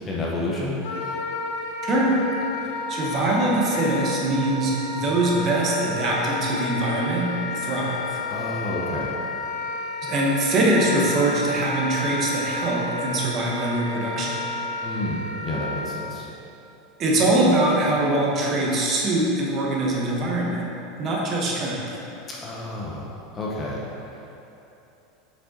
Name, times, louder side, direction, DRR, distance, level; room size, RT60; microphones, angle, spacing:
voice 1, 0.1-0.8 8.3-9.1 14.8-16.3 22.4-23.1 23.3-23.8, left 1 dB, 15° left, -4 dB, 0.7 m, -29 dB
Wind instrument woodwind instrument, 0.8-15.9, left 2 dB, 60° left, 0.6 m, -31 dB
voice 2, 1.8-2.2 2.9-8.2 10.0-14.4 17.0-20.6 21.0-21.8, right 1 dB, 25° right, -3 dB, 0.9 m, -23 dB
6.3 x 5.3 x 4.0 m, 3.0 s
supercardioid pair, 175°, 0 cm